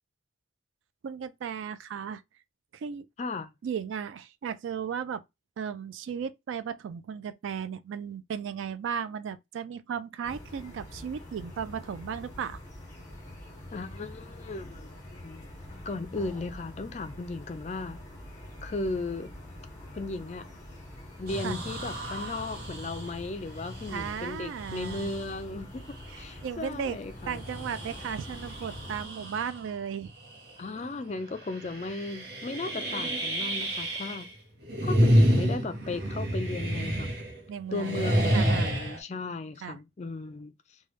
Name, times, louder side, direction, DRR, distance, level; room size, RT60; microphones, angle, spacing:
voice 1, 1.0-2.2 2.7-3.1 3.6-5.2 5.6-12.6 21.4-21.6 23.9-25.1 26.4-27.0 27.3-30.1 35.0-35.1 37.5-38.0 38.3-38.7 39.6-39.8, right 7 dB, 80° right, 0.3 m, -35 dB
voice 2, 3.2-3.5 13.7-15.5 15.8-18.0 18.6-19.3 19.9-20.5 21.2-27.4 30.6-34.3 34.8-37.1 37.7-40.5, left 3 dB, 35° left, 0.4 m, -36 dB
sound 1, 10.2-29.0, left 1 dB, 20° left, 1.3 m, -45 dB
sound 2, 21.3-25.4 26.0-26.1 27.1-29.7 30.1-30.5 30.8-30.9 31.5-34.3 34.6-37.5 37.7-39.0, equal, 55° right, 0.9 m, -29 dB
3.2 x 2.2 x 3.0 m
head